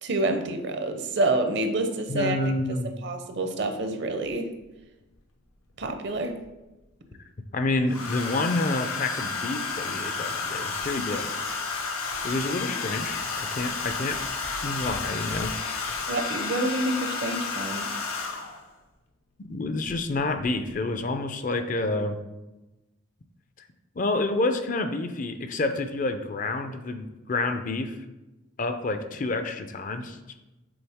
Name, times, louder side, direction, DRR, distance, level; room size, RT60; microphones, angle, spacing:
voice 1, 0.0-2.4 2.8-4.5 5.8-6.3 16.1-17.9, right 2 dB, 55° right, 6 dB, 0.6 m, -27 dB
voice 2, 2.1-3.0 7.5-11.3 12.2-13.2 13.5-14.2 14.6-15.5 19.4-22.2 24.0-28.0 28.6-30.2, left 2 dB, 40° left, 8 dB, 0.4 m, -28 dB
Domestic sounds home sounds, 4.3-4.4 5.8-6.5 7.9-18.7 19.9-20.1 20.4-20.8, left 4 dB, 85° left, 0.9 m, -31 dB
7.0 x 4.0 x 3.5 m, 1.0 s
head